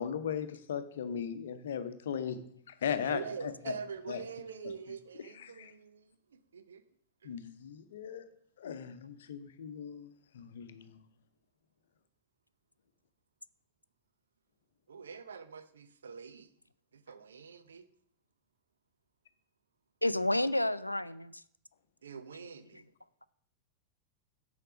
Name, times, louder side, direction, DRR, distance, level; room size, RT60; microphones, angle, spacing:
voice 1, 0.0-2.4 2.8-3.7 4.1-4.2 5.6-5.7 7.2-8.3 8.6-10.1 10.3-11.0, left 8 dB, 60° left, 0.7 m, -37 dB
voice 2, 3.0-6.8 7.2-7.3 8.2-8.5 14.9-16.5 16.9-17.8 22.0-22.8, right 6 dB, 70° right, 0.6 m, -45 dB
voice 3, 20.0-21.4, left 1 dB, 85° left, 0.3 m, -30 dB
6.7 x 5.2 x 6.1 m
figure-of-eight pair, 90°, 0 cm